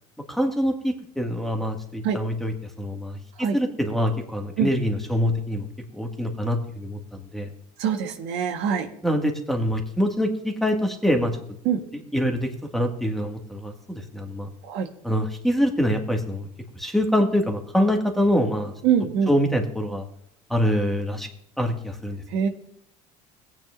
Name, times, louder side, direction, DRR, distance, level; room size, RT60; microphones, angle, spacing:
voice 1, 0.3-5.7 5.9-7.0 7.3-7.5 9.0-11.6 12.1-14.5 15.0-16.5 16.7-18.7 19.3-20.1 20.5-21.3 21.6-22.2, equal, ahead, 2 dB, 2.0 m, -25 dB
voice 2, 7.8-8.9 11.6-11.8 14.6-14.9 18.8-19.3 22.3-22.5, right 8 dB, 65° right, 5 dB, 1.5 m, -23 dB
18.0 x 9.1 x 2.6 m, 0.72 s
hypercardioid pair, 75°, 20 cm